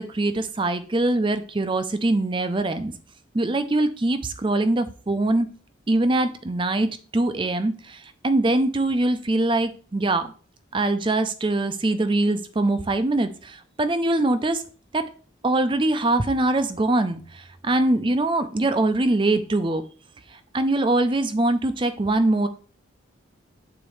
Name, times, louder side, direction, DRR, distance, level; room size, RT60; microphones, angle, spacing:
voice 1, 0.0-2.9 3.3-5.5 5.9-10.3 10.7-14.6 14.9-15.1 15.4-19.8 20.3-22.5, right 2 dB, 25° right, 11 dB, 0.5 m, -23 dB
8.9 x 4.0 x 3.1 m, 0.40 s
head